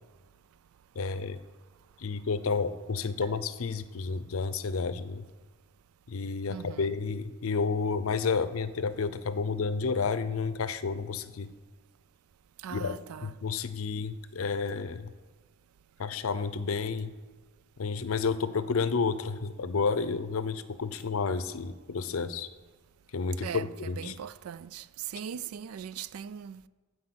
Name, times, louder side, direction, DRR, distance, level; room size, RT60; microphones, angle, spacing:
voice 1, 1.0-1.4 2.0-5.2 6.1-11.5 12.7-15.1 16.0-17.1 17.8-22.5 23.1-24.1, left 4 dB, 70° left, 0.6 m, -31 dB
voice 2, 6.5-6.9 12.6-13.3 23.4-24.8 25.1-26.7, right 8 dB, 85° right, 0.4 m, -40 dB
12.5 x 4.7 x 7.9 m
head